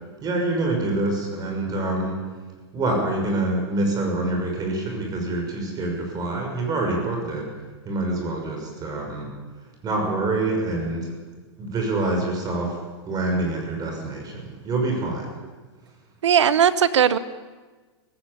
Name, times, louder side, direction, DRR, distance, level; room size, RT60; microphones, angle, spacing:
voice 1, 0.2-2.2 2.7-7.5 7.9-9.3 9.8-11.1 11.6-12.8 13.0-15.3, right 2 dB, 25° right, 2 dB, 6.4 m, -26 dB
voice 2, 16.2-17.2, right 8 dB, 80° right, 15 dB, 1.2 m, -18 dB
18.5 x 17.0 x 8.6 m, 1.3 s
hypercardioid pair, 115°, 15 cm